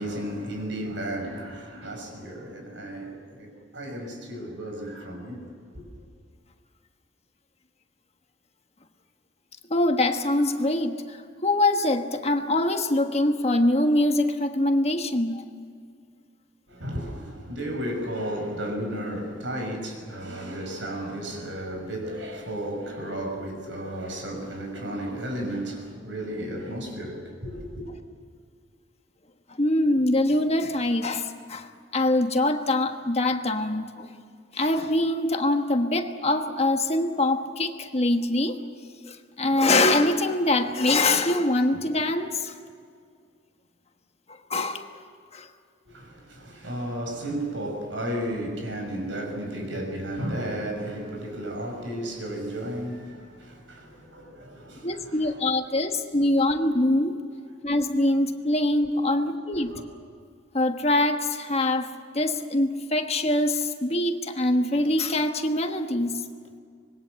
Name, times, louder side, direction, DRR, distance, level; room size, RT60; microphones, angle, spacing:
voice 1, 0.0-5.8 16.7-27.8 45.8-55.4 59.6-59.8, right 1 dB, 80° right, 5.8 m, -33 dB
voice 2, 9.7-15.4 29.5-34.1 34.5-38.6 39.1-42.5 44.5-44.9 45.3-45.5 54.8-57.1 57.6-59.7 60.5-66.2, left 1 dB, 35° left, 1.4 m, -24 dB
25.5 x 21.0 x 7.7 m
head